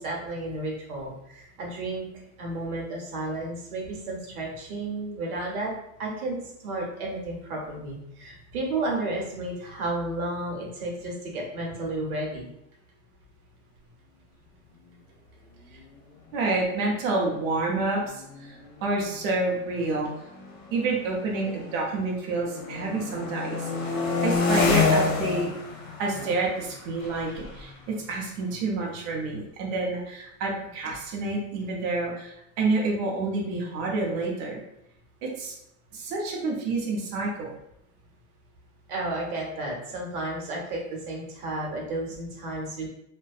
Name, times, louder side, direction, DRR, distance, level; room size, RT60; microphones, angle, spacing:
voice 1, 0.0-2.1 2.4-5.7 6.0-12.5 38.9-42.9, right 2 dB, 90° right, -1 dB, 1.0 m, -32 dB
voice 2, 16.3-20.1 20.7-25.5 26.0-34.6 35.2-35.5 35.9-37.5, right 3 dB, 45° right, -2 dB, 0.6 m, -28 dB
sound 1, 16.6-16.7 16.9-17.3 18.0-22.0 22.3-29.0, left 4 dB, 70° left, 0.7 m, -30 dB
2.6 x 2.2 x 2.3 m, 0.81 s
supercardioid pair, 150°, 43 cm